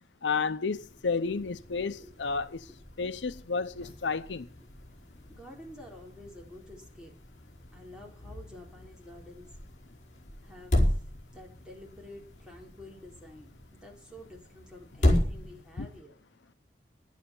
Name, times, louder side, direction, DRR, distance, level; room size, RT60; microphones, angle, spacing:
voice 1, 0.2-2.7 3.0-4.5 15.8-15.9, left 4 dB, 85° left, 0.7 m, -31 dB
sound 1, 0.8-16.0, left 1 dB, 40° left, 4.9 m, -35 dB
voice 2, 5.3-7.1 7.7-9.5 10.4-11.0 11.3-16.2, left 1 dB, 5° right, 3.7 m, -50 dB
11.0 x 9.2 x 7.1 m
head